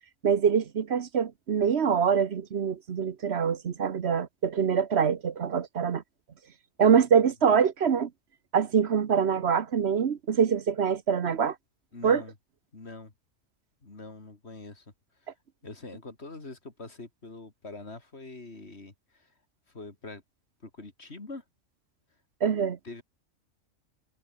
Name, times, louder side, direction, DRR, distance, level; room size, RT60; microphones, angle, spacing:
voice 1, 0.2-6.0 6.8-8.1 8.5-11.5 12.0-12.2 22.4-22.8, right 7 dB, 55° right, 1.2 m, -24 dB
voice 2, 11.9-12.3 12.7-13.1 13.8-14.9 15.2-15.3 15.6-19.3 19.7-20.2 20.6-21.4 22.8-23.0, left 3 dB, 55° left, 3.4 m, -44 dB
omnidirectional pair, 1.4 m